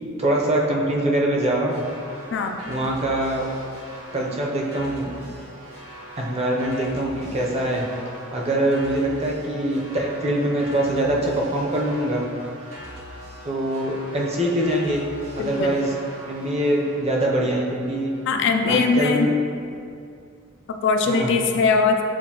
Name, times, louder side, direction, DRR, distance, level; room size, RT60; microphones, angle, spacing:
voice 1, 0.2-1.8 2.7-3.4 4.1-5.1 6.2-7.8 8.3-12.2 13.4-15.0 15.4-15.9 16.3-18.1 18.7-19.3 21.1-21.3, right 1 dB, 30° right, -2 dB, 0.6 m, -23 dB
sound 1, 1.7-18.5, equal, 85° right, 0.9 m, -41 dB
voice 2, 15.4-15.8 18.3-19.3 20.7-22.0, left 4 dB, 60° left, 4 dB, 0.3 m, -21 dB
7.1 x 2.5 x 2.8 m, 2.4 s
head